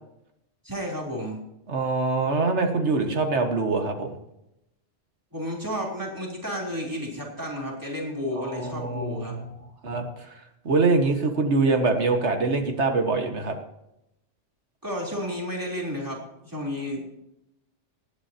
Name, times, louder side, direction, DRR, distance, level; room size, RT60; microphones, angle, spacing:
voice 1, 0.6-1.4 5.3-9.3 14.8-17.2, equal, 15° right, -2 dB, 3.7 m, -32 dB
voice 2, 1.7-4.1 8.4-9.5 9.8-10.1 10.7-13.6, right 3 dB, 65° right, 5 dB, 2.0 m, -24 dB
19.5 x 11.0 x 2.9 m, 0.84 s
omnidirectional pair, 1.3 m